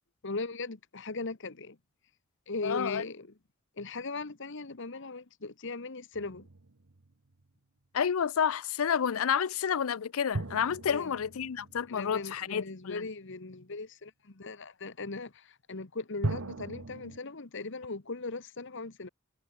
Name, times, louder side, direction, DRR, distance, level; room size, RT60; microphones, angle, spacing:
voice 1, 0.2-1.8 2.5-3.3 3.8-6.5 10.9-11.1 11.9-19.1, left 3 dB, 60° left, 1.4 m, -39 dB
voice 2, 2.6-3.0 7.9-13.0, left 7 dB, 90° left, 0.5 m, -30 dB
sound 1, 6.1-7.5 10.3-12.9 16.2-17.2, right 2 dB, 80° right, 1.1 m, -39 dB
head